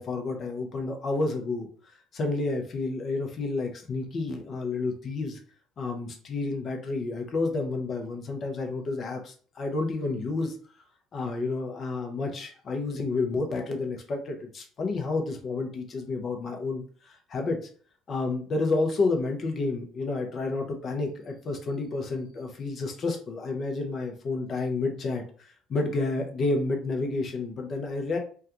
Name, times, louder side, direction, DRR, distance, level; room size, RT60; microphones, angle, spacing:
voice 1, 0.0-1.7 2.1-5.4 5.8-10.5 11.1-17.6 18.1-25.2 25.7-28.2, left 3 dB, 45° left, 3 dB, 0.6 m, -30 dB
2.2 x 2.2 x 2.8 m, 0.44 s
figure-of-eight pair, 55°, 0 cm